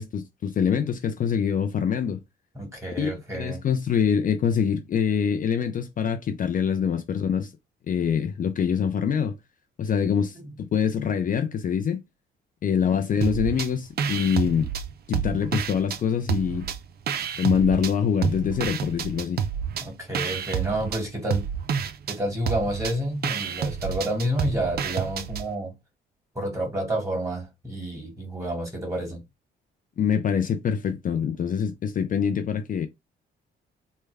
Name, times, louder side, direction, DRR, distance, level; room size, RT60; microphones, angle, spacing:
voice 1, 0.0-2.2 3.0-7.5 7.9-9.4 9.8-12.0 12.6-14.7 15.1-16.7 17.4-19.4 30.0-32.9, left 7 dB, 45° left, 0.4 m, -25 dB
voice 2, 2.5-3.6 10.1-10.5 19.8-21.5 22.1-25.7 26.4-29.2, right 1 dB, 15° right, 2.0 m, -29 dB
sound 1, 13.2-13.7 14.0-16.0 16.3-17.9 18.2-25.5, right 7 dB, 50° right, 0.4 m, -29 dB
3.3 x 2.1 x 3.4 m
cardioid pair, 90°, 20 cm